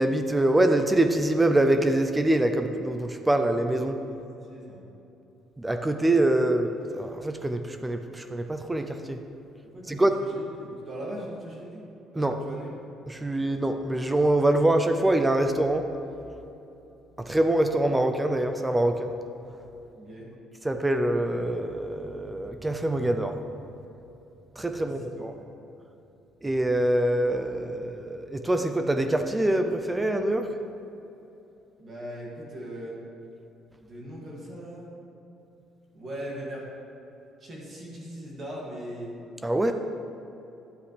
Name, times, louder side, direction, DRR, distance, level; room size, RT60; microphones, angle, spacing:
voice 1, 0.0-4.0 5.6-9.2 9.9-10.2 12.2-12.3 13.1-15.9 17.2-19.1 20.6-23.4 24.6-25.3 26.4-30.5 39.4-39.7, right 1 dB, 10° right, 7 dB, 0.4 m, -24 dB
voice 2, 4.1-4.8 9.6-11.8 12.1-12.7 19.9-20.3 24.8-24.9 25.2-25.3 31.8-33.0 33.8-34.9 35.9-36.6 37.4-39.1, right 1 dB, 35° right, -3 dB, 2.2 m, -39 dB
10.5 x 7.9 x 3.3 m, 2.9 s
cardioid pair, 135°, 0 cm